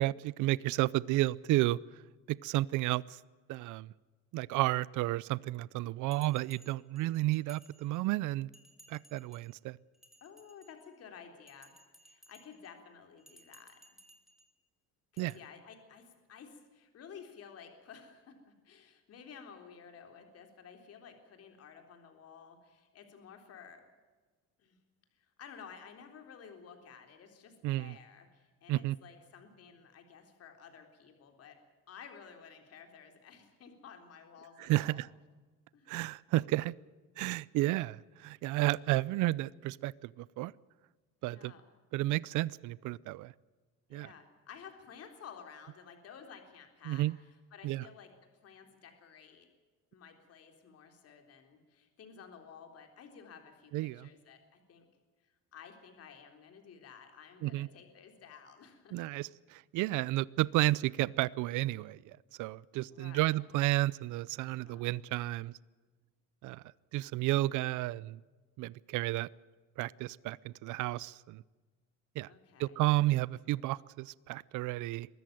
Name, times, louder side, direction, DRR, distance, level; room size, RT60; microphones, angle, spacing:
voice 1, 0.0-1.8 2.3-3.2 3.5-3.9 4.3-8.5 8.9-9.8 15.2-15.3 27.6-28.0 28.7-29.0 34.6-35.1 35.9-36.7 37.2-40.5 41.2-41.5 41.9-43.3 43.9-44.1 46.9-47.1 47.6-47.8 53.7-54.1 57.4-57.7 58.9-65.5 66.4-66.6 66.9-68.2 68.6-69.3 69.8-71.4 72.2-72.3 72.6-75.1, right 17 dB, 70° right, 22 dB, 0.6 m, -32 dB
Bell, 6.1-8.2 8.5-9.5 9.9-11.0 11.5-12.7 13.2-14.5 15.2-15.3, right 1 dB, ahead, 3.2 m, -61 dB
voice 2, 10.2-11.7 12.0-13.8 15.1-23.8 24.6-24.8 25.2-31.6 31.9-35.0 35.7-36.0 41.2-41.6 43.9-49.5 49.9-54.8 55.2-59.0 62.9-63.3 64.5-64.9 72.3-72.8, left 7 dB, 50° left, 5 dB, 3.7 m, -53 dB
23.0 x 14.0 x 9.2 m, 1.3 s
cardioid pair, 140°, 32 cm